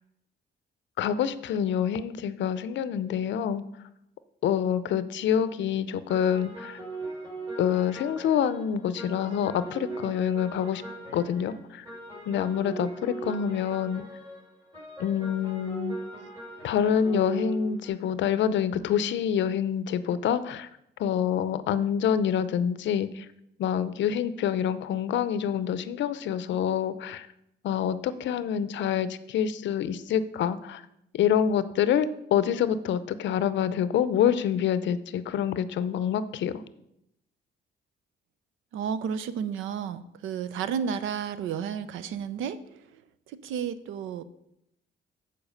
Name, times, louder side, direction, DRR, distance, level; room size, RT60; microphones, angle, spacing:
voice 1, 1.0-3.6 4.4-6.8 7.6-10.8 11.1-11.9 12.3-14.0 15.0-16.0 16.6-20.7 21.0-23.3 23.6-27.3 27.6-30.8 31.1-36.6, left 8 dB, 70° left, 14 dB, 0.6 m, -26 dB
sound 1, 6.1-17.9, right 3 dB, 25° right, 3.2 m, -39 dB
voice 2, 38.7-42.9 43.3-44.2, right 7 dB, 85° right, 14 dB, 0.6 m, -32 dB
7.1 x 4.7 x 6.5 m, 0.80 s
cardioid pair, 90°, 20 cm